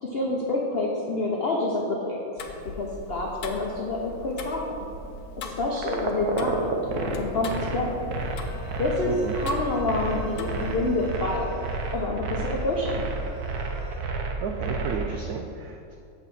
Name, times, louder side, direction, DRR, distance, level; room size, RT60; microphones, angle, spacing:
voice 1, 0.0-2.4 2.7-4.6 5.3-8.0 8.8-11.6 11.9-13.0, left 2 dB, 85° left, -2 dB, 0.5 m, -28 dB
Tick-tock, 2.4-11.1, left 3 dB, 65° left, 1.0 m, -40 dB
sound 1, 5.8-15.1, right 4 dB, 60° right, 1.1 m, -31 dB
sound 2, 8.2-14.0, left 3 dB, 20° right, 2.2 m, -46 dB
voice 2, 9.1-9.4 14.4-16.0, right 5 dB, 80° right, 4 dB, 0.8 m, -33 dB
8.2 x 4.1 x 6.8 m, 2.6 s
omnidirectional pair, 2.1 m